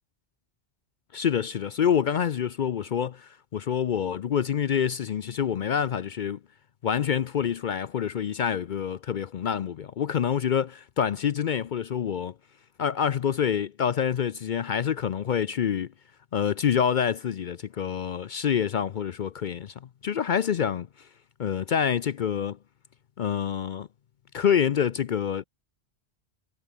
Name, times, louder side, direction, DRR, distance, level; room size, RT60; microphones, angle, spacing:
voice 1, 1.1-6.4 6.8-12.3 12.8-15.9 16.3-19.7 20.0-20.9 21.4-22.6 23.2-23.9 24.3-25.4, left 8 dB, 55° left, 0.6 m, -27 dB
omnidirectional pair, 1.1 m